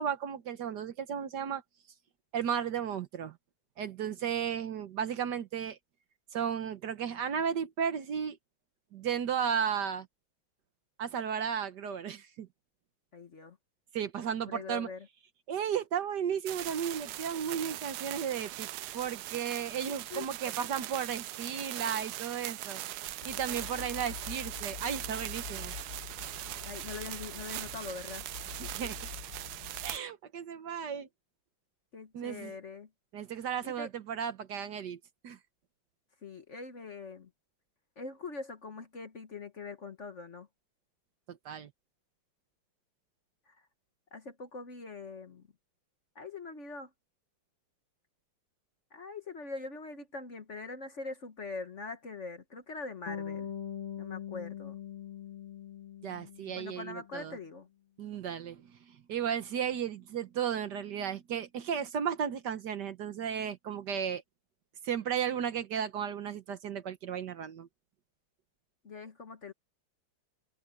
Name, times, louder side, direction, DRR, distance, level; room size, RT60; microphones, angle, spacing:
voice 1, 0.0-1.6 2.3-3.4 3.8-5.8 6.3-8.4 8.9-10.1 11.0-12.5 13.9-14.9 15.5-18.7 18.9-22.8 23.2-25.7 28.6-29.0 29.8-31.1 32.1-32.6 33.1-35.0 35.2-35.4 41.3-41.7 56.0-57.4 58.0-64.2 64.8-67.7, right 8 dB, 60° right, 1.5 m, -34 dB
voice 2, 13.1-13.6 14.5-15.1 20.1-20.3 26.6-28.3 31.9-32.9 33.6-33.9 36.2-37.3 38.0-40.5 43.5-43.6 44.1-45.5 46.1-46.9 48.9-53.5 54.0-54.8 56.5-57.7 68.8-69.5, left 4 dB, 40° left, 1.4 m, -43 dB
sound 1, 16.5-30.0, right 15 dB, 75° right, 0.9 m, -40 dB
sound 2, 23.2-30.0, left 10 dB, 70° left, 1.0 m, -46 dB
Bass guitar, 53.1-57.2, left 9 dB, 85° left, 2.3 m, -42 dB
open air
omnidirectional pair, 2.2 m